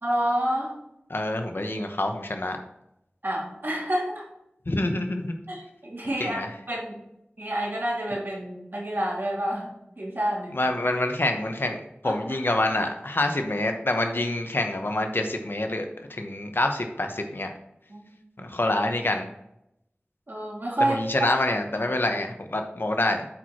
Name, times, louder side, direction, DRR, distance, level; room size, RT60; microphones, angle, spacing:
voice 1, 0.0-0.7 3.2-4.3 5.5-6.4 6.7-6.9 7.4-9.7 10.0-10.6 12.0-12.2 17.9-18.1 20.3-21.3, right 1 dB, 60° right, -4 dB, 2.9 m, -28 dB
voice 2, 1.1-2.6 4.7-5.3 6.2-6.5 10.5-17.5 18.4-19.3 20.9-23.3, left 1 dB, 65° left, 4 dB, 1.0 m, -26 dB
8.6 x 4.7 x 4.4 m, 0.82 s
wide cardioid pair, 45°, 4 cm